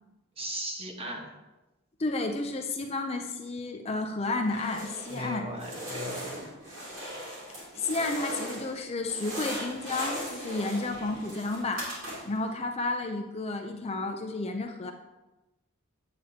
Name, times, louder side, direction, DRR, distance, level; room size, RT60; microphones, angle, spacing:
voice 1, 0.4-1.3 5.1-6.5, right 1 dB, 30° right, 1 dB, 1.2 m, -37 dB
voice 2, 2.0-5.5 7.7-11.9 12.2-14.9, left 2 dB, 30° left, 4 dB, 0.5 m, -31 dB
sound 1, 4.4-5.3 5.6-8.8 9.0-12.4, equal, 65° right, 3.0 m, -38 dB
8.7 x 8.5 x 2.8 m, 1.1 s
head